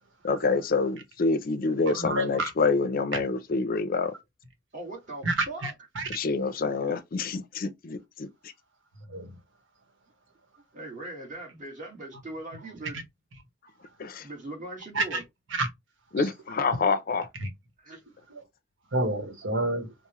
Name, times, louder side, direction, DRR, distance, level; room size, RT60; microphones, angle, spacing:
voice 1, 0.2-4.1 6.1-8.3 14.0-14.3 16.1-17.3, left 4 dB, 50° left, 0.4 m, -27 dB
voice 2, 1.9-2.5 5.2-6.1 9.1-9.3 14.9-15.2 15.5-15.7 17.4-17.5 18.3-18.4 18.9-19.9, right 2 dB, 85° right, 1.0 m, -29 dB
voice 3, 4.7-5.7 10.7-13.0 14.2-15.2 17.8-18.0, right 2 dB, 45° right, 1.4 m, -40 dB
4.6 x 2.0 x 3.0 m
head